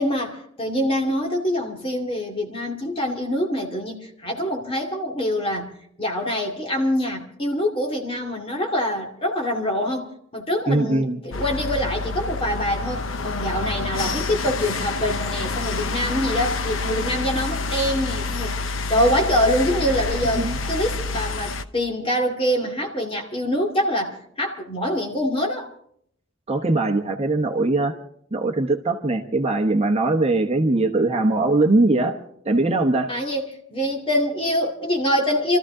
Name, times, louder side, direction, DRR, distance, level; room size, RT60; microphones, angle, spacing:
voice 1, 0.0-5.7 6.0-18.5 18.9-25.7 33.1-35.6, equal, 30° left, 2.3 m, -25 dB
voice 2, 10.7-11.2 20.4-20.6 26.5-27.9 28.3-32.1 32.4-33.1, right 2 dB, 30° right, 1.0 m, -21 dB
sound 1, 11.3-21.6, left 3 dB, 85° left, 0.9 m, -28 dB
27.0 x 14.0 x 3.7 m
head